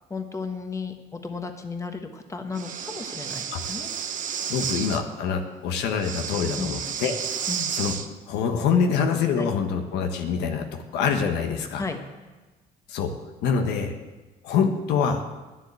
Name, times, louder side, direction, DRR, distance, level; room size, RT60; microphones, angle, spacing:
voice 1, 0.1-3.9 6.6-6.8 7.5-7.7 9.4-9.5 11.8-12.0, left 4 dB, 20° left, 6 dB, 1.2 m, -34 dB
Breathing, 2.5-5.0 6.0-8.1, right 8 dB, 50° right, 0.9 m, -31 dB
voice 2, 4.5-7.1 7.7-7.9 8.3-10.7 10.9-11.8 12.9-13.1 13.4-13.9 14.4-15.2, left 6 dB, 85° left, 5 dB, 1.3 m, -25 dB
10.0 x 7.5 x 8.3 m, 1.2 s
cardioid pair, 110°, 17 cm